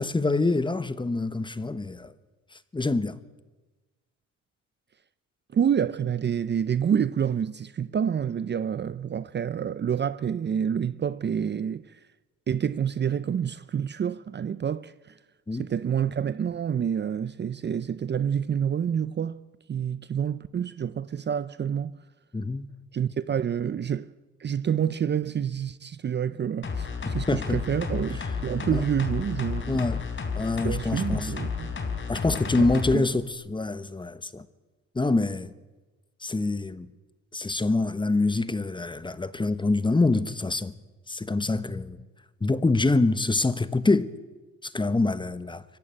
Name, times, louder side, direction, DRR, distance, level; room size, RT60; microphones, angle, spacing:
voice 1, 0.0-2.1 2.5-3.2 15.5-15.6 22.3-22.7 27.3-27.6 28.7-28.8 29.7-30.0 30.3-31.3 32.1-34.4 34.9-35.5 36.2-36.9 37.3-40.7 41.1-42.0 42.4-44.1 44.6-45.6, left 3 dB, 15° left, 1.1 m, -25 dB
voice 2, 5.5-12.0 12.5-15.2 15.5-19.4 19.7-22.0 22.9-24.1 24.4-29.9 30.6-31.8 32.6-33.1, right 8 dB, 35° right, 0.6 m, -28 dB
sound 1, 26.6-33.0 33.3-33.4, left 5 dB, 40° left, 3.6 m, -32 dB
24.0 x 15.5 x 8.8 m
cardioid pair, 90°, 30 cm